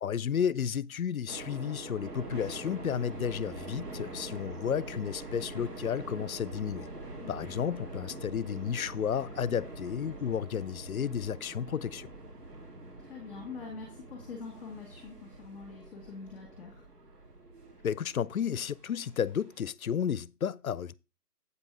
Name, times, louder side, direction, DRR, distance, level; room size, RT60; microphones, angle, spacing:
voice 1, 0.0-6.9 7.3-12.1 17.8-20.9, left 8 dB, 65° left, 0.5 m, -32 dB
sound 1, 1.3-19.6, right 2 dB, 80° right, 2.1 m, -44 dB
voice 2, 13.0-16.8, left 5 dB, 10° left, 1.5 m, -44 dB
8.3 x 5.2 x 4.7 m
figure-of-eight pair, 150°, 47 cm